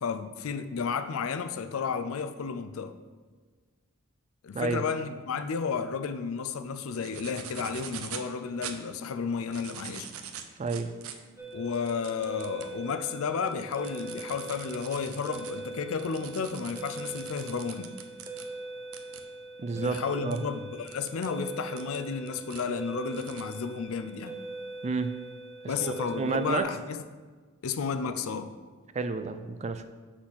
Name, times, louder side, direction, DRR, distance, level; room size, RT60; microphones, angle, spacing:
voice 1, 0.0-3.0 4.4-10.1 11.5-17.9 19.7-24.4 25.7-27.0 27.6-28.5, left 5 dB, 70° left, 10 dB, 0.5 m, -32 dB
sound 1, 6.9-8.3 8.6-8.8 9.3-12.7 13.2-18.5 18.9-19.2 19.9-20.0 20.3-20.4 20.9-21.3 21.8-22.6 23.1-23.4, right 8 dB, 80° right, 0.6 m, -43 dB
voice 2, 10.6-10.9 19.6-20.4 24.8-25.1 25.6-26.6 28.9-29.8, right 4 dB, 30° right, 10 dB, 0.4 m, -31 dB
sound 2, 11.4-26.6, right 2 dB, 10° right, 0.8 m, -42 dB
6.0 x 4.1 x 6.2 m, 1.4 s
head